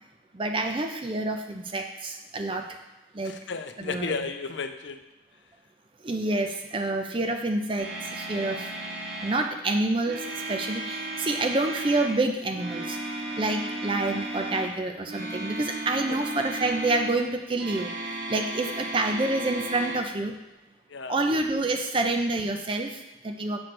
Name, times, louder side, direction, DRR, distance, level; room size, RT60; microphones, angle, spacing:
voice 1, 0.3-2.7 3.1-3.4 3.8-4.2 6.0-8.7 9.2-13.0 13.4-17.9 18.3-20.4 21.1-23.6, right 2 dB, 25° right, 5 dB, 0.4 m, -28 dB
voice 2, 3.2-5.0 16.1-16.2 18.6-18.7 20.9-21.1, left 4 dB, 65° left, 8 dB, 0.5 m, -33 dB
sound 1, 7.8-9.5 10.0-12.1 12.5-14.8 15.0-17.2 17.6-20.0, right 1 dB, 60° right, 1.1 m, -35 dB
7.7 x 3.2 x 5.9 m, 1.0 s
head